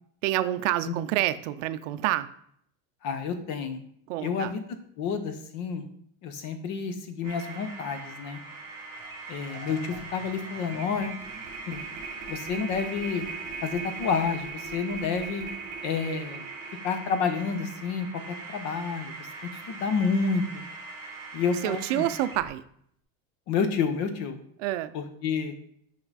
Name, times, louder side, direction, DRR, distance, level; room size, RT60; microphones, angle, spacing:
voice 1, 0.2-2.3 4.1-4.5 21.6-22.6 24.6-24.9, right 14 dB, 65° right, 12 dB, 0.5 m, -28 dB
voice 2, 3.0-3.8 4.2-4.6 5.0-5.9 6.2-8.4 9.3-11.2 11.7-11.8 12.3-13.2 13.6-15.5 15.8-16.4 16.8-18.1 18.5-19.3 19.7-20.6 21.3-22.1 23.5-24.4 24.9-25.5, left 5 dB, 45° left, 8 dB, 0.9 m, -29 dB
sound 1, 7.2-22.5, right 3 dB, 10° right, 2.3 m, -42 dB
sound 2, 9.0-9.1 9.4-19.7, right 5 dB, 35° right, 1.6 m, -41 dB
5.7 x 5.0 x 4.0 m, 0.68 s
supercardioid pair, 160°, 41 cm